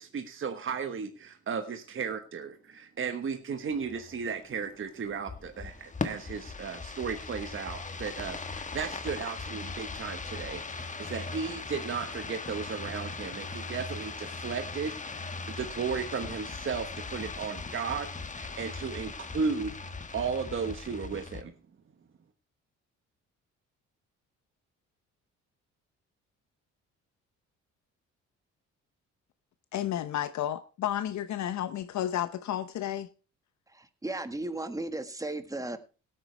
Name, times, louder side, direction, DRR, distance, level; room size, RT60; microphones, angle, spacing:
voice 1, 0.0-15.2 15.6-18.1 18.4-19.8 20.1-21.5, right 5 dB, 40° right, 7 dB, 1.3 m, -35 dB
sound 1, 3.7-21.4, left 4 dB, 25° left, 1.3 m, -39 dB
voice 2, 29.7-33.1, left 11 dB, 65° left, 12 dB, 0.8 m, -32 dB
voice 3, 33.7-35.8, right 2 dB, 10° right, 9 dB, 1.6 m, -35 dB
17.5 x 8.9 x 3.3 m, 0.34 s
cardioid pair, 90°, 30 cm